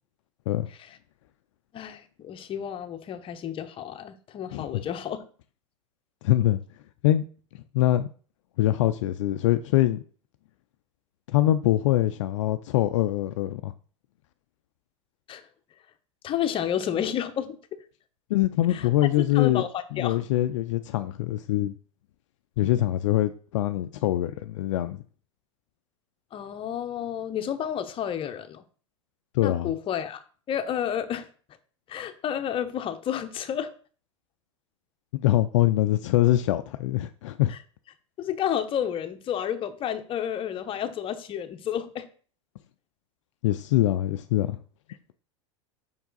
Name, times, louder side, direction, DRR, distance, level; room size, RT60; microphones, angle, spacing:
voice 1, 1.7-5.2 15.3-15.4 16.2-17.8 18.7-18.9 19.3-20.2 26.3-28.6 29.4-31.3 31.9-33.7 37.5-37.6 38.2-42.1, left 9 dB, 30° left, 0.8 m, -31 dB
voice 2, 6.2-6.6 7.0-7.2 7.7-8.1 8.6-10.0 11.3-13.7 18.3-19.6 19.9-21.7 22.6-25.0 29.3-29.7 35.2-37.5 43.4-44.6, left 14 dB, 65° left, 0.4 m, -23 dB
5.4 x 4.6 x 3.9 m
hypercardioid pair, 90°, 17 cm